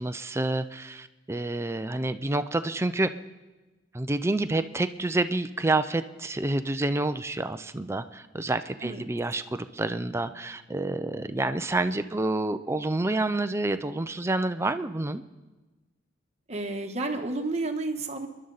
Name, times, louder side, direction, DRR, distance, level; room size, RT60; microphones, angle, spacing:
voice 1, 0.0-3.1 3.9-15.2, right 2 dB, 15° right, 10 dB, 0.5 m, -28 dB
voice 2, 16.5-18.3, right 2 dB, 35° right, 4 dB, 1.3 m, -31 dB
25.5 x 11.0 x 4.0 m, 1.2 s
head